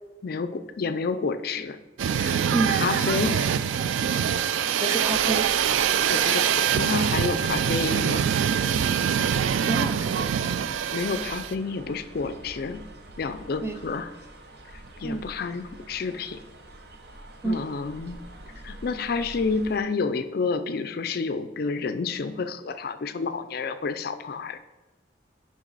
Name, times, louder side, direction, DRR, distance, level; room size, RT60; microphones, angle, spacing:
voice 1, 0.2-1.8 2.2-2.4 2.7-3.6 6.1-8.3 10.9-12.9 13.2-14.1 15.0-16.4 17.4-18.2 18.6-24.6, left 4 dB, 55° left, 11 dB, 0.4 m, -29 dB
sound 1, 2.0-11.5, right 8 dB, 90° right, 0.3 m, -24 dB
voice 2, 4.8-5.5 9.4-10.5 13.6-13.8 15.0-15.2 17.4-17.6, right 2 dB, 15° right, 6 dB, 0.5 m, -29 dB
sound 2, 5.0-19.8, right 1 dB, 55° right, 0.8 m, -46 dB
9.3 x 5.2 x 4.0 m, 1.1 s
head